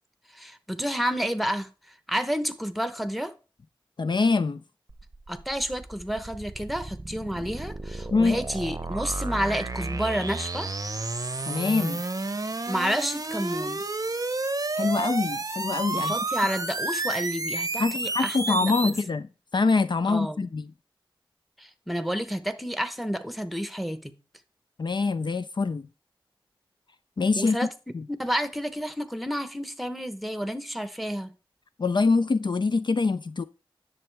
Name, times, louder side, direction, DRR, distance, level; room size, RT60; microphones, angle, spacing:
voice 1, 0.3-3.3 5.3-10.7 12.7-13.8 15.9-19.0 20.1-20.5 21.6-24.2 27.4-27.7 28.2-31.3, equal, ahead, 1.0 m, -30 dB
voice 2, 4.0-4.6 8.1-8.4 11.5-12.0 14.8-16.1 17.8-19.3 19.5-20.6 24.8-25.9 27.2-27.6 27.9-28.0 31.8-33.4, left 4 dB, 60° left, 0.4 m, -24 dB
sound 1, 4.9-19.0, right 3 dB, 40° right, 0.7 m, -31 dB
11.0 x 7.0 x 3.4 m
wide cardioid pair, 50°, 9 cm